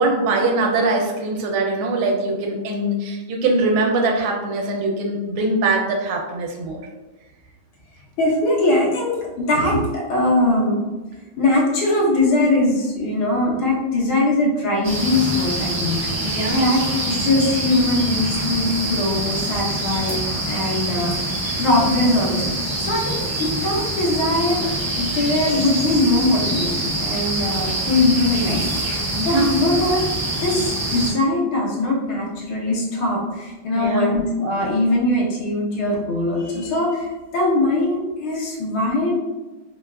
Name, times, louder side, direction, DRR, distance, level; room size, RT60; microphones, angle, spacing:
voice 1, 0.0-6.8 16.2-16.7 29.1-29.5 33.7-34.0, right 2 dB, 85° right, 1 dB, 1.4 m, -22 dB
voice 2, 8.2-10.8 11.4-16.0 16.6-21.3 21.6-22.3 22.9-24.6 25.0-28.6 29.2-30.0 30.4-39.1, left 2 dB, 75° left, -3 dB, 1.6 m, -21 dB
sound 1, 14.8-31.1, right 1 dB, 35° right, 0.6 m, -25 dB
3.9 x 2.3 x 2.2 m, 1.1 s
omnidirectional pair, 2.2 m